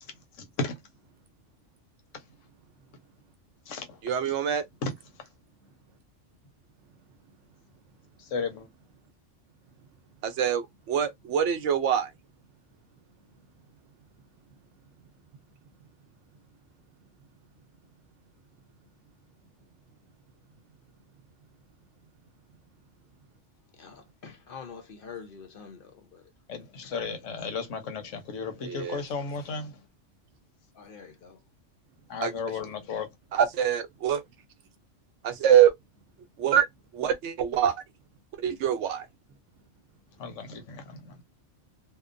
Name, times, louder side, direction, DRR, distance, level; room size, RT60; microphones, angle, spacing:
voice 1, 0.0-0.8 2.1-2.2 3.7-4.0 4.3-4.4 4.8-4.9 5.2-5.3 8.2-8.7 26.5-29.9 32.1-33.1 40.2-41.2, left 4 dB, 85° left, 1.1 m, -35 dB
voice 2, 4.0-4.6 10.2-12.1 28.6-29.0 32.2-32.3 33.3-34.2 35.2-35.7 36.4-36.7 36.9-37.8 38.4-39.1, right 9 dB, 75° right, 0.9 m, -24 dB
voice 3, 23.7-26.3 30.7-31.4, left 6 dB, 55° left, 0.8 m, -46 dB
2.7 x 2.1 x 2.5 m
omnidirectional pair, 1.2 m